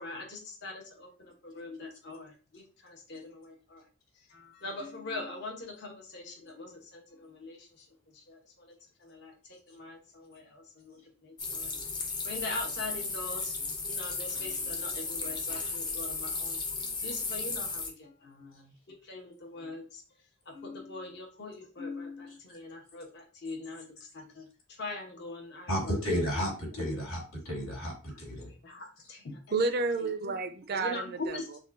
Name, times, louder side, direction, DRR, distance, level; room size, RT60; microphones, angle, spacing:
voice 1, 0.0-3.8 4.3-7.8 8.1-8.7 9.0-11.8 12.2-13.5 13.9-20.0 20.5-24.5 24.8-26.2 26.8-27.0 28.1-28.2 28.5-29.4 30.0-30.1 30.7-31.5, left 2 dB, 55° left, 1 dB, 0.9 m, -42 dB
sound 1, 11.4-17.9, left 3 dB, 20° left, 0.6 m, -35 dB
voice 2, 25.7-28.5, equal, 85° left, -1 dB, 2.2 m, -32 dB
voice 3, 29.5-31.6, right 3 dB, 50° right, 7 dB, 0.4 m, -31 dB
6.3 x 2.3 x 2.5 m, 0.36 s
head